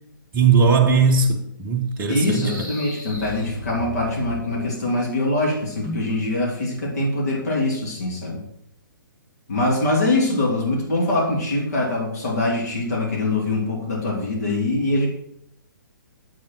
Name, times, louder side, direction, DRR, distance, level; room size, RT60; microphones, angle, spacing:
voice 1, 0.3-2.5 5.9-6.0, right 5 dB, 20° right, -1 dB, 0.9 m, -18 dB
sound 1, 2.0-4.8, left 1 dB, 90° left, 3.5 m, -36 dB
voice 2, 2.1-8.4 9.5-15.1, left 2 dB, 50° left, -2 dB, 3.0 m, -23 dB
8.7 x 7.7 x 4.5 m, 0.74 s
figure-of-eight pair, 130°, 11 cm